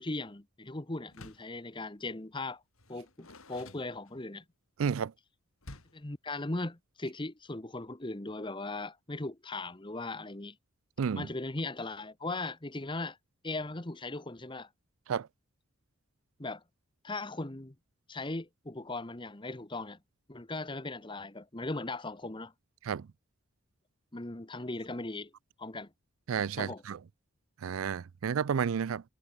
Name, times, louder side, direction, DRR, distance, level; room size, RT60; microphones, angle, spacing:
voice 1, 0.0-2.6 2.9-4.4 5.7-10.6 11.1-13.2 13.4-14.7 16.4-16.6 17.0-17.7 18.1-20.0 20.3-22.5 24.1-25.3 25.6-25.9 26.6-26.8, left 2 dB, 20° left, 1.1 m, -38 dB
Door, 1.0-1.6 2.7-4.4 5.6-6.1, left 2 dB, 80° left, 4.4 m, -51 dB
voice 2, 4.8-5.1 11.0-11.3 15.1-15.3 22.8-23.1 26.3-27.0 27.6-29.0, right 7 dB, 75° right, 0.4 m, -31 dB
head